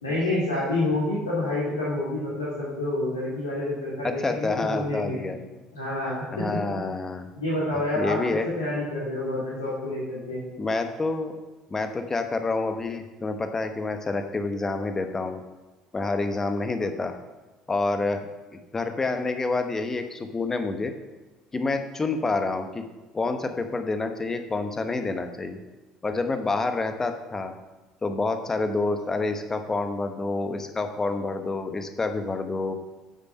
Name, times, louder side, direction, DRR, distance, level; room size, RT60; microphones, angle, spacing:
voice 1, 0.0-5.3 5.7-6.3 6.7-6.8 7.3-10.4, left 2 dB, 75° left, -7 dB, 2.6 m, -28 dB
voice 2, 4.0-5.4 6.3-7.3 7.9-8.5 10.6-11.3 11.7-15.4 15.9-17.1 17.7-18.2 18.7-20.9 21.5-22.8 23.1-25.6 26.0-27.5 28.0-32.7, left 3 dB, 20° left, 7 dB, 1.2 m, -28 dB
9.6 x 7.1 x 5.6 m, 1.2 s
figure-of-eight pair, 60°, 2 cm